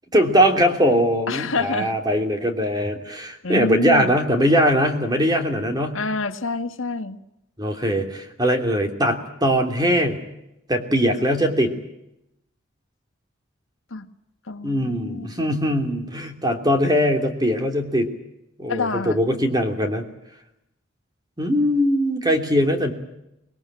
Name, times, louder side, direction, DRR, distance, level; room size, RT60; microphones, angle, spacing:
voice 1, 0.1-5.9 7.6-10.2 10.7-11.7 14.6-18.1 18.6-20.0 21.4-22.9, equal, 20° right, 5 dB, 3.1 m, -21 dB
voice 2, 1.3-1.9 3.4-4.1 5.9-7.2 13.9-14.1 14.5-15.3 18.7-19.2, left 3 dB, 75° left, 7 dB, 1.7 m, -27 dB
26.0 x 20.5 x 8.9 m, 0.85 s
head